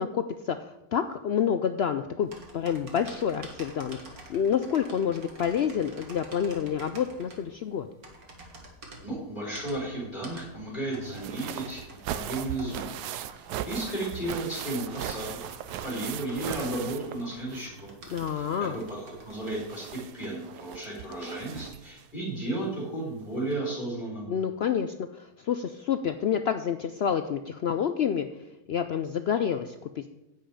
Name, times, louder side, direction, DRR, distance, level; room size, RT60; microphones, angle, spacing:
voice 1, 0.0-7.9 18.1-18.7 24.3-28.3 28.7-30.1, left 8 dB, 75° left, 9 dB, 0.5 m, -28 dB
sound 1, 2.2-20.0, right 2 dB, 65° right, 2.4 m, -49 dB
voice 2, 9.0-12.9 13.3-15.4 15.8-17.9 18.3-18.5 18.7-19.0 19.2-24.3, right 2 dB, 30° left, -5 dB, 4.1 m, -34 dB
sound 2, 11.0-17.8 18.1-22.0 23.1-23.2 23.5-23.6, right 11 dB, 85° right, 1.2 m, -39 dB
10.5 x 5.7 x 8.5 m, 0.92 s
omnidirectional pair, 1.7 m